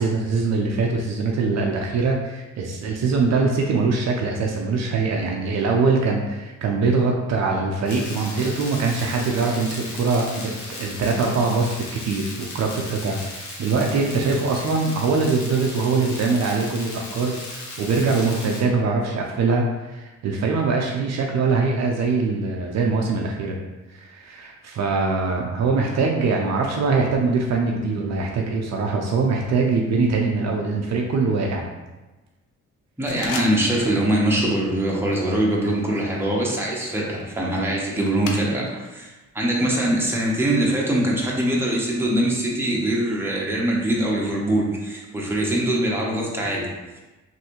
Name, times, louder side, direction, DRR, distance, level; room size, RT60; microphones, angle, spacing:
voice 1, 0.0-23.6 23.9-31.7, right 4 dB, 60° right, 0 dB, 0.5 m, -23 dB
sound 1, 7.9-18.6, left 2 dB, 70° left, 1.0 m, -37 dB
voice 2, 33.0-46.7, right 1 dB, 10° right, -4 dB, 0.8 m, -23 dB
sound 2, 33.1-34.0 34.2-34.6 35.1-38.9 39.2-40.7, left 4 dB, 90° left, 0.5 m, -38 dB
3.2 x 2.7 x 2.9 m, 1.1 s
cardioid pair, 90°, 30 cm